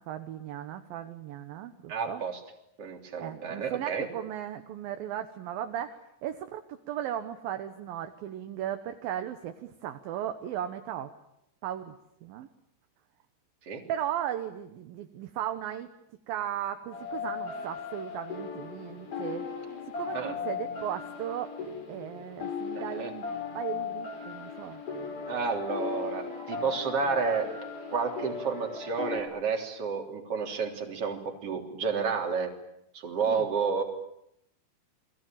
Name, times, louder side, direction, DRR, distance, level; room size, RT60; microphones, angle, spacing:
voice 1, 0.0-2.2 3.2-11.1 11.6-11.9 12.2-12.5 13.9-15.9 16.3-19.5 20.0-21.5 21.9-23.3 23.5-24.8 33.3-33.4, right 11 dB, 65° right, 8 dB, 2.6 m, -36 dB
voice 2, 1.9-2.4 2.8-4.1 13.7-13.8 20.1-20.3 22.8-23.1 25.3-27.5 27.9-32.5 32.9-33.8, right 5 dB, 35° right, 3 dB, 4.0 m, -31 dB
sound 1, 16.9-29.2, left 6 dB, 35° left, 5.0 m, -37 dB
30.0 x 22.0 x 9.0 m, 0.77 s
omnidirectional pair, 5.0 m